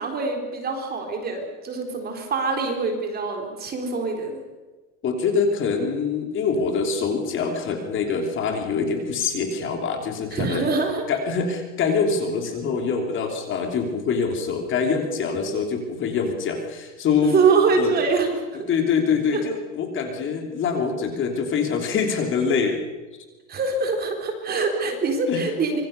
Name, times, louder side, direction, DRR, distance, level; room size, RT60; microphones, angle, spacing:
voice 1, 0.0-4.4 10.3-11.0 17.2-18.7 19.3-19.4 23.5-25.8, right 4 dB, 25° right, 3 dB, 4.1 m, -24 dB
voice 2, 5.0-10.7 11.1-17.4 17.8-17.9 18.7-22.8 25.3-25.4, left 5 dB, 30° left, 4 dB, 3.2 m, -24 dB
25.5 x 23.0 x 6.8 m, 1.2 s
supercardioid pair, 150°, 38 cm